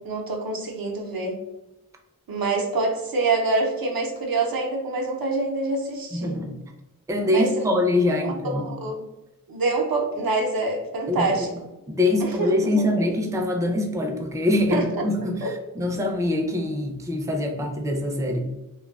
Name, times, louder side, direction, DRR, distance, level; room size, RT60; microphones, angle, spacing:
voice 1, 0.0-1.4 2.3-6.4 7.3-7.5 8.2-9.0 9.5-11.5 12.2-13.1 14.7-14.9 15.2-15.5, right 3 dB, 85° right, 1 dB, 0.5 m, -26 dB
voice 2, 6.1-6.6 7.1-8.7 11.1-11.5 11.9-18.5, left 1 dB, 10° right, 3 dB, 0.3 m, -24 dB
2.5 x 2.2 x 2.3 m, 0.96 s
wide cardioid pair, 60°, 35 cm